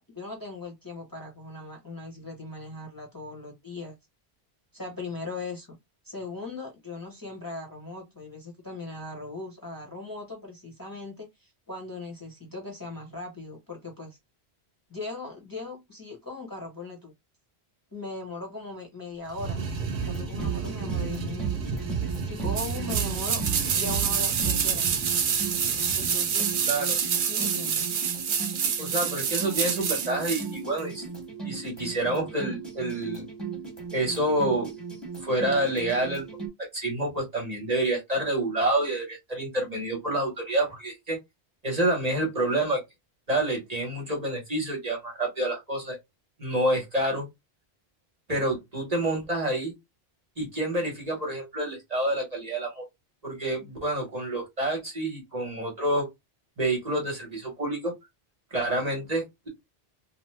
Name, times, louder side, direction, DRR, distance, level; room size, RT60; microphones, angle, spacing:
voice 1, 0.0-4.0 4.7-5.8 6.0-14.2 14.9-17.1 17.9-19.6 20.0-21.7 22.2-23.4 23.7-24.9 26.0-26.6 27.3-28.0, left 2 dB, 20° left, 0.9 m, -39 dB
sound 1, 19.3-26.7, right 4 dB, 80° right, 0.9 m, -35 dB
sound 2, 20.0-36.5, right 6 dB, ahead, 1.1 m, -36 dB
sound 3, 22.5-30.5 30.8-30.9, right 7 dB, 60° right, 0.7 m, -27 dB
voice 2, 26.7-27.0 28.8-31.0 31.4-33.3 33.9-34.7 35.2-36.3 36.7-41.2 41.6-42.8 43.3-46.0 46.4-47.2 48.3-49.7 50.4-52.8 53.2-56.1 56.6-57.9 58.5-59.5, right 1 dB, 40° right, 1.0 m, -28 dB
2.8 x 2.1 x 3.2 m
omnidirectional pair, 1.1 m